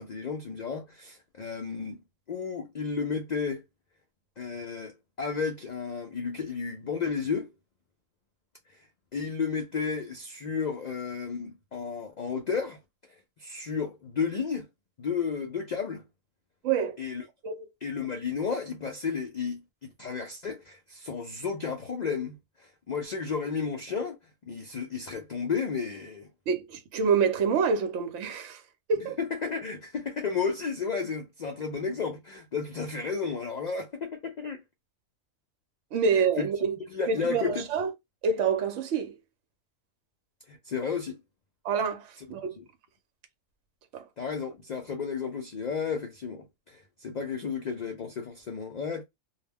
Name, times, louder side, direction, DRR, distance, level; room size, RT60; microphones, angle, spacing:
voice 1, 0.0-2.0 2.3-3.6 4.4-7.5 8.7-8.9 9.1-12.8 13.4-14.7 15.0-16.0 17.0-17.2 17.8-26.3 29.0-34.6 36.1-36.5 36.9-37.7 40.5-41.2 42.6-42.7 44.2-49.0, left 5 dB, 80° left, 0.3 m, -33 dB
voice 2, 16.6-17.0 17.4-17.6 26.5-28.6 28.9-29.2 35.9-36.8 37.1-37.9 38.2-39.2 41.6-42.6 43.9-44.0, right 5 dB, 70° right, 0.9 m, -27 dB
2.3 x 2.1 x 3.4 m
omnidirectional pair, 1.4 m